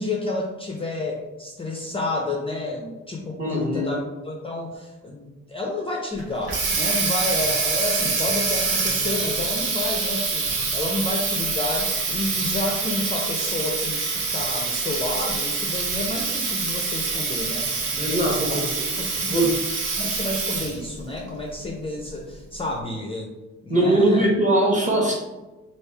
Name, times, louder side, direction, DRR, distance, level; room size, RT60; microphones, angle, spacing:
voice 1, 0.0-18.6 19.0-19.5 19.9-23.3 23.6-24.3, left 2 dB, 20° left, -1 dB, 0.5 m, -30 dB
voice 2, 3.4-3.9 18.0-18.6 19.3-19.5 23.7-25.1, right 1 dB, 25° right, -2 dB, 1.1 m, -21 dB
Water tap faucet, 6.2-20.9, right 4 dB, 85° right, 0.8 m, -26 dB
3.2 x 2.7 x 3.3 m, 1.1 s
cardioid pair, 90°, 30 cm